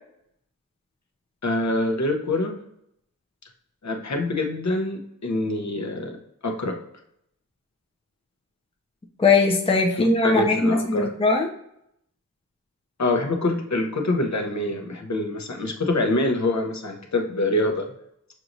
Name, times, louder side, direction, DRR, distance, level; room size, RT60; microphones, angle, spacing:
voice 1, 1.4-2.6 3.8-6.1 6.4-6.8 10.0-11.1 13.0-17.9, left 2 dB, 50° left, 3 dB, 0.8 m, -25 dB
voice 2, 9.2-11.5, left 3 dB, 15° left, 1 dB, 0.5 m, -20 dB
6.3 x 2.9 x 2.6 m, 0.76 s
wide cardioid pair, 80°, 35 cm